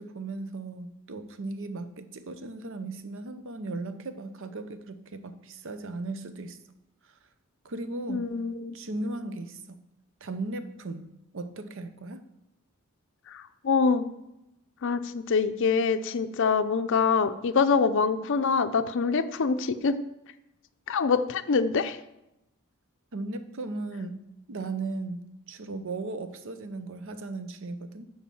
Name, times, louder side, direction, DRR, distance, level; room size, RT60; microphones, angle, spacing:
voice 1, 0.0-6.6 7.0-7.1 7.6-8.3 8.7-9.8 10.2-12.2 23.1-24.2 24.5-28.0, right 2 dB, 65° right, 10 dB, 0.7 m, -37 dB
voice 2, 8.1-8.7 13.3-14.1 14.8-20.0 20.9-22.0, left 5 dB, 60° left, 10 dB, 0.5 m, -25 dB
7.3 x 4.8 x 7.0 m, 0.88 s
head